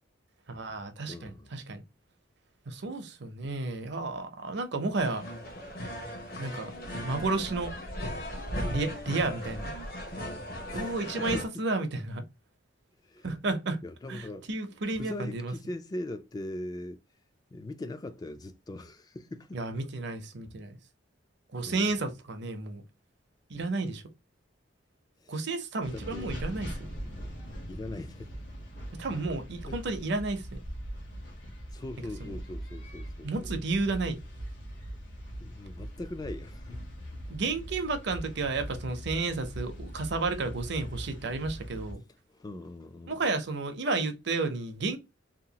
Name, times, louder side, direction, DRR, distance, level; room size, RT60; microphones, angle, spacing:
voice 1, 0.5-1.8 2.7-5.2 6.4-6.7 7.0-7.7 8.7-9.7 10.7-12.2 13.2-13.8 14.1-15.5 19.5-20.8 21.5-22.8 23.5-24.0 25.3-26.9 29.0-30.6 32.2-32.3 33.2-34.2 37.3-42.0 43.1-45.0, right 3 dB, 65° right, 0.6 m, -32 dB
voice 2, 1.1-1.5 10.7-11.6 13.0-13.3 13.8-14.5 14.9-17.0 17.5-19.6 21.7-22.0 25.2-25.3 25.9-26.4 27.7-28.4 29.7-29.8 31.7-33.5 35.4-36.8 42.3-43.2, left 1 dB, 20° left, 0.3 m, -41 dB
sound 1, 4.9-11.4, equal, 55° left, 0.9 m, -37 dB
sound 2, 25.8-41.9, equal, 70° left, 1.2 m, -41 dB
2.9 x 2.3 x 2.7 m
head